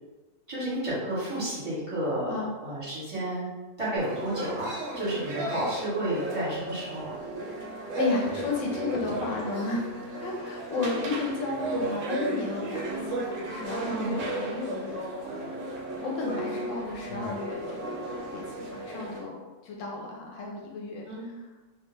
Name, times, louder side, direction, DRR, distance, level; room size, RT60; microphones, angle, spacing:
voice 1, 0.5-3.5 3.8-7.2 13.8-14.1 21.1-21.3, right 1 dB, 25° right, -10 dB, 1.1 m, -31 dB
sound 1, 4.0-19.2, right 2 dB, 55° right, 0.7 m, -35 dB
voice 2, 7.7-9.9 10.2-15.6 16.0-18.0 18.3-21.0, left 3 dB, 85° left, -1 dB, 1.0 m, -33 dB
2.4 x 2.1 x 3.3 m, 1.2 s
omnidirectional pair, 1.3 m